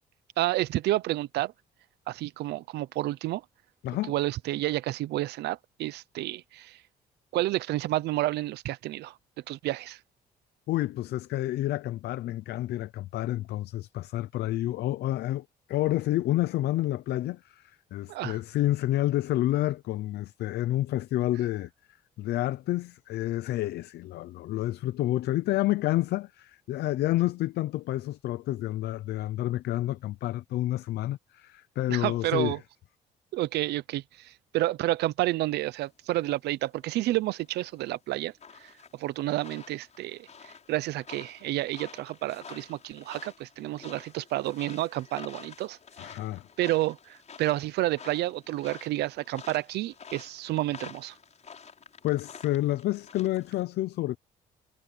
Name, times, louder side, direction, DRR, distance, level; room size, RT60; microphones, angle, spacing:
voice 1, 0.4-1.5 2.1-3.4 4.1-6.8 7.3-9.1 9.5-10.0 18.1-18.4 31.9-32.6 33.3-38.3 38.6-40.3 40.7-45.8 46.6-51.1, right 16 dB, 85° right, 0.8 m, -30 dB
voice 2, 10.7-21.7 22.2-32.6 46.0-46.5 52.0-54.2, left 15 dB, 80° left, 0.7 m, -29 dB
sound 1, 36.5-53.6, left 6 dB, 45° left, 6.5 m, -49 dB
cardioid pair, 85°, 17 cm